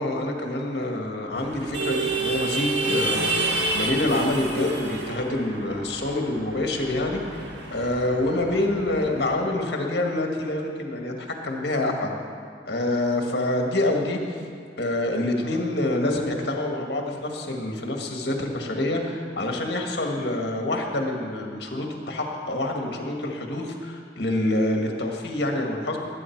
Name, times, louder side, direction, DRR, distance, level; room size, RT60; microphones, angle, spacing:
voice 1, 0.0-12.2 12.6-14.2 14.8-26.0, left 1 dB, 60° left, 1 dB, 1.7 m, -26 dB
sound 1, 1.4-9.2, right 2 dB, 75° right, 1.7 m, -30 dB
19.5 x 8.8 x 4.6 m, 2.2 s
head